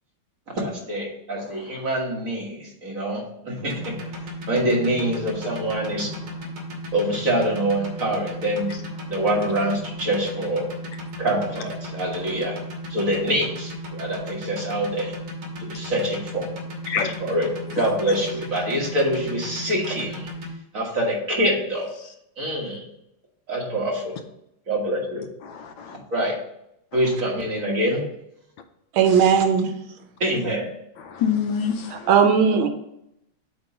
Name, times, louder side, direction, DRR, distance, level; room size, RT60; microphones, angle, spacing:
voice 1, 0.5-4.1 4.5-6.1 6.9-8.7 9.1-10.7 11.2-12.6 12.9-15.1 15.6-16.5 17.2-20.3 20.7-21.9 22.4-22.8 23.5-24.1 24.7-25.2 26.1-26.4 26.9-28.0 30.2-30.7, right 1 dB, 40° right, -2 dB, 1.8 m, -25 dB
voice 2, 1.3-1.9 6.3-6.4 8.7-9.1 16.9-17.2 25.4-26.0 26.9-27.2 31.0-32.1, left 7 dB, 75° left, 7 dB, 1.2 m, -28 dB
sound 1, 3.6-20.5, left 1 dB, 60° right, 1.9 m, -35 dB
voice 3, 28.9-29.7 32.1-32.7, right 7 dB, 80° right, 6 dB, 1.5 m, -17 dB
8.0 x 3.0 x 5.4 m, 0.80 s
omnidirectional pair, 2.3 m